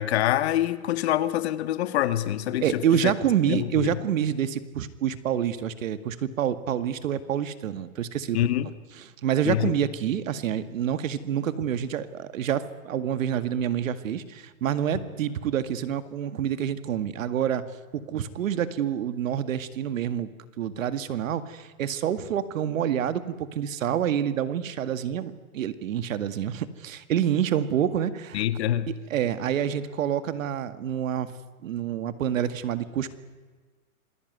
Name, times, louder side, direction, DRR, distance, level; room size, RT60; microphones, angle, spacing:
voice 1, 0.0-2.8 3.5-4.0 8.3-8.7 9.4-9.7 28.3-28.9, left 12 dB, 50° left, 12 dB, 1.6 m, -25 dB
voice 2, 2.6-8.4 9.2-17.6 17.9-20.3 20.6-28.4 29.1-31.3 31.6-33.1, right 9 dB, 65° right, 12 dB, 2.1 m, -27 dB
27.0 x 20.0 x 9.5 m, 1.4 s
hypercardioid pair, 155°, 43 cm